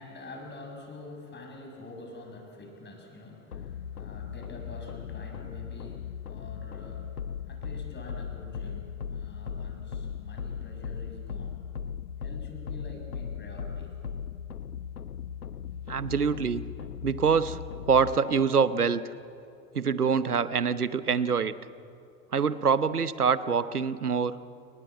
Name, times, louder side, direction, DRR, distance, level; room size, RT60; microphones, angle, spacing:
voice 1, 0.0-11.7 12.2-13.9, left 2 dB, 25° left, 3 dB, 6.9 m, -46 dB
sound 1, 3.5-18.2, left 7 dB, 85° left, 0.7 m, -38 dB
voice 2, 15.9-16.6 17.0-17.6 17.9-19.0 19.7-21.5 22.3-24.4, right 6 dB, 85° right, 16 dB, 1.0 m, -25 dB
29.5 x 21.0 x 8.6 m, 2.6 s
figure-of-eight pair, 75°, 44 cm